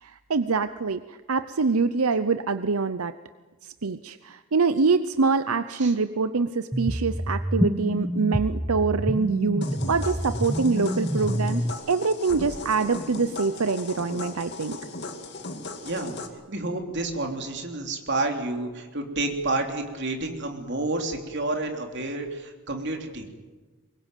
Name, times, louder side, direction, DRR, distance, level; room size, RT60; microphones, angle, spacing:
voice 1, 0.0-1.0 1.3-3.1 3.6-14.8, right 4 dB, 85° right, 11 dB, 0.8 m, -25 dB
sound 1, 6.7-11.7, equal, 5° right, 0.7 m, -27 dB
sound 2, 9.6-16.3, left 2 dB, 50° left, 2.4 m, -37 dB
voice 2, 15.8-16.1 16.5-23.3, right 2 dB, 55° right, 3 dB, 3.3 m, -29 dB
24.0 x 21.5 x 9.2 m, 1.3 s
head